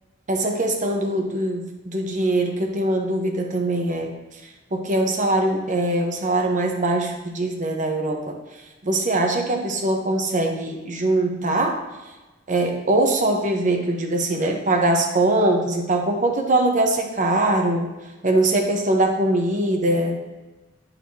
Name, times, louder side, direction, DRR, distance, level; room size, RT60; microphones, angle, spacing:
voice 1, 0.3-4.1 4.7-8.4 8.8-11.8 12.5-17.9 18.2-20.2, right 2 dB, 40° right, 2 dB, 0.9 m, -22 dB
11.0 x 4.1 x 2.8 m, 1.1 s
head